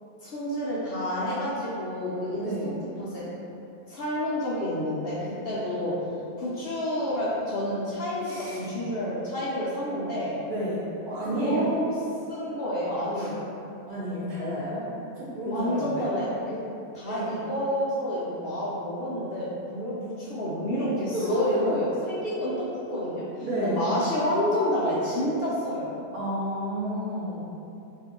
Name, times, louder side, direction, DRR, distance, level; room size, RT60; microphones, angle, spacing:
voice 1, 0.2-2.7 3.0-3.3 3.9-5.9 6.4-10.4 11.2-11.9 12.3-13.4 15.4-16.6 16.9-25.9, left 1 dB, 65° left, -8 dB, 0.5 m, -29 dB
voice 2, 2.4-2.7 8.2-8.7 10.5-11.7 13.2-13.3 13.9-14.9 15.2-16.0 17.1-17.3 21.1-21.6 23.4-23.9 26.1-27.4, right 1 dB, 35° right, -10 dB, 1.0 m, -31 dB
3.0 x 2.6 x 3.6 m, 2.7 s
omnidirectional pair, 1.6 m